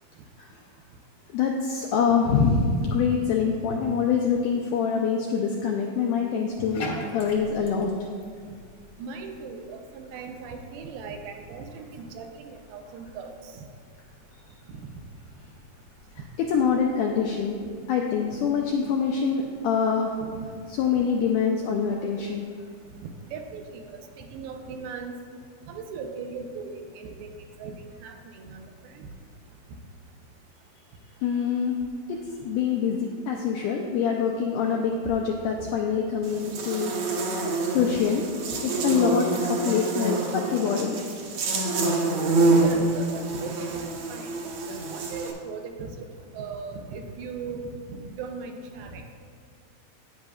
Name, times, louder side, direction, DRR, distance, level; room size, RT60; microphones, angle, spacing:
voice 1, 1.3-7.9 16.5-17.6 17.9-20.2 20.7-22.5 31.2-31.8 32.1-37.0 37.3-38.2 38.6-41.0, left 6 dB, 90° left, 1 dB, 1.8 m, -25 dB
Bathtub (filling or washing), 6.5-24.8, left 1 dB, 75° left, 1.2 m, -47 dB
voice 2, 9.0-13.6 14.7-14.8 20.2-20.5 23.3-25.1 25.7-27.3 27.6-27.7 28.0-29.1 42.1-44.4 44.9-49.0, right 5 dB, 90° right, 4 dB, 2.6 m, -38 dB
Buzz, 36.2-45.3, right 2 dB, 70° right, 1.6 m, -26 dB
10.0 x 9.3 x 2.4 m, 2.1 s
omnidirectional pair, 4.3 m